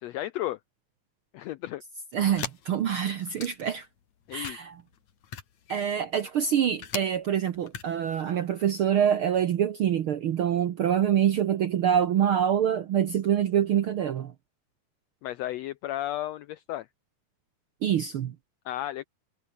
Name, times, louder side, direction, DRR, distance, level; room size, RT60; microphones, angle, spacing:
voice 1, 0.0-0.6 1.3-1.8 4.3-4.6 15.2-16.9 18.6-19.1, left 14 dB, 80° left, 1.5 m, -33 dB
voice 2, 2.1-3.9 4.3-4.8 5.7-14.3 17.8-18.3, right 9 dB, 70° right, 1.3 m, -25 dB
sound 1, 2.3-3.8 4.3-7.0 7.5-8.2, left 8 dB, 60° left, 3.4 m, -39 dB
omnidirectional pair, 3.7 m